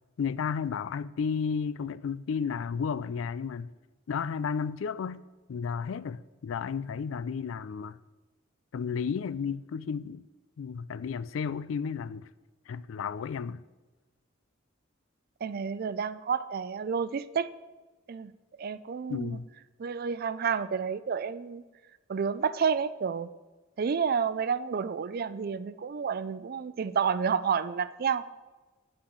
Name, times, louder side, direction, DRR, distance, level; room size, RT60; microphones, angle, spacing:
voice 1, 0.2-3.7 4.1-8.0 8.7-10.2 10.6-12.3 12.7-13.6 19.1-19.5, left 6 dB, 75° left, 0.4 m, -33 dB
voice 2, 15.4-17.5 18.1-18.3 18.6-19.4 19.8-21.6 22.1-23.3 23.8-28.2, right 6 dB, 50° right, 0.4 m, -30 dB
9.8 x 8.6 x 3.9 m
head